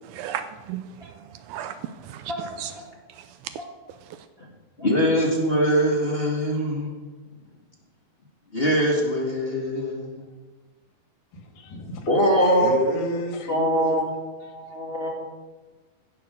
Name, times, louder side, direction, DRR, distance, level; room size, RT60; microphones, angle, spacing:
voice 1, 0.0-1.1 1.5-2.7 3.2-3.3, right 10 dB, 85° right, 1.8 m, -35 dB
voice 2, 4.8-6.9 8.5-10.3 12.1-12.9 13.5-15.2, equal, 25° left, 1.4 m, -23 dB
voice 3, 11.5-14.0, left 2 dB, 85° left, 3.6 m, -31 dB
16.5 x 6.8 x 6.7 m
omnidirectional pair, 4.1 m